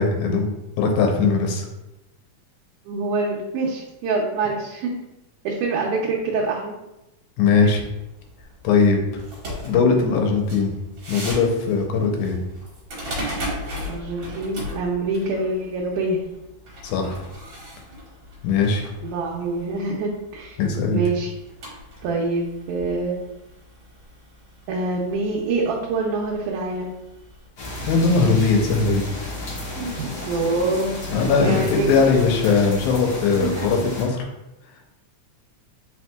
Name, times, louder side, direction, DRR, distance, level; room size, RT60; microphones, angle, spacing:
voice 1, 0.0-1.7 7.4-7.8 8.6-9.2 9.6-10.7 11.1-12.4 16.8-17.2 18.4-18.8 20.6-21.0 27.9-29.0 31.1-34.3, left 4 dB, 80° left, 3 dB, 2.1 m, -20 dB
voice 2, 2.9-5.0 5.4-6.7 13.8-16.2 19.0-20.6 20.9-21.3 22.0-23.2 24.7-26.9 29.8-31.0 31.4-32.0 32.8-32.9 33.4-33.6, right 3 dB, 80° right, -2 dB, 2.0 m, -25 dB
sound 1, 7.8-27.5, equal, 50° right, 1.7 m, -38 dB
sound 2, 27.6-34.1, left 1 dB, 50° left, 1.2 m, -33 dB
4.4 x 4.3 x 2.2 m, 0.94 s
omnidirectional pair, 3.5 m